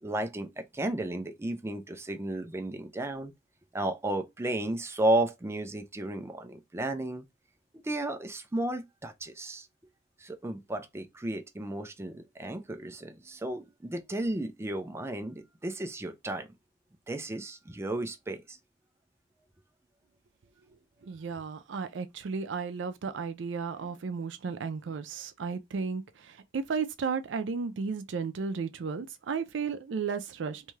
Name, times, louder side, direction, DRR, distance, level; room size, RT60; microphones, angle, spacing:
voice 1, 0.0-3.3 3.7-7.3 7.8-9.7 10.2-16.5 17.1-18.6, right 1 dB, 15° right, 0.4 m, -33 dB
voice 2, 21.0-30.6, right 5 dB, 80° right, 0.4 m, -34 dB
2.7 x 2.3 x 3.1 m
head